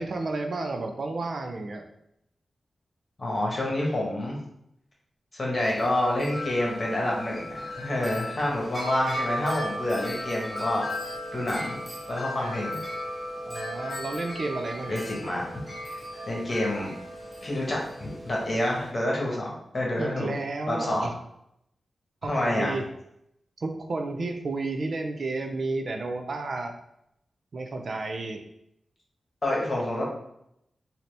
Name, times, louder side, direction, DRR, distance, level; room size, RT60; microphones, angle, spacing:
voice 1, 0.0-1.8 13.5-15.0 20.0-21.2 22.2-22.8 23.6-26.7 27.5-28.4, right 3 dB, 55° right, 4 dB, 0.4 m, -32 dB
voice 2, 3.2-4.4 5.3-10.8 11.3-11.8 12.1-12.8 14.9-15.4 15.8-16.0 16.3-16.9 17.4-20.4 20.7-21.1 22.3-22.8 29.4-30.0, left 1 dB, 35° left, -3 dB, 1.3 m, -28 dB
Wind chime, 5.6-18.9, equal, 10° left, 1.0 m, -36 dB
4.0 x 2.8 x 3.3 m, 0.78 s
wide cardioid pair, 100°, 0 cm